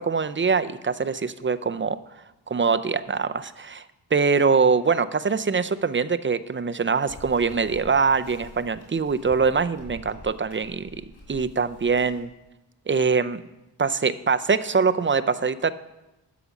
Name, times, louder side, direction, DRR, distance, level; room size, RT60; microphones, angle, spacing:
voice 1, 0.0-2.0 2.5-3.8 4.1-10.9 11.3-12.3 12.9-13.4 13.8-15.7, right 5 dB, 30° right, 12 dB, 0.4 m, -23 dB
sound 1, 7.1-12.2, left 1 dB, 65° left, 4.4 m, -46 dB
13.5 x 5.0 x 7.1 m, 0.96 s
wide cardioid pair, 105°, 42 cm